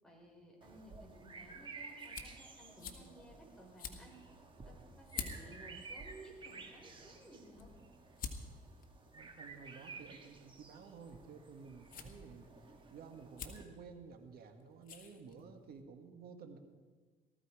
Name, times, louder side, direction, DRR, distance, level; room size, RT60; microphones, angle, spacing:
voice 1, 0.0-4.1 4.6-7.7, right 1 dB, 5° left, -2 dB, 5.2 m, -57 dB
sound 1, 0.6-13.6, right 4 dB, 30° right, 1.9 m, -53 dB
sound 2, 1.0-15.8, left 6 dB, 55° left, 1.8 m, -52 dB
voice 2, 9.1-16.6, right 5 dB, 65° right, 6 dB, 1.9 m, -53 dB
18.5 x 14.0 x 4.9 m, 1.4 s
cardioid pair, 110°, 17 cm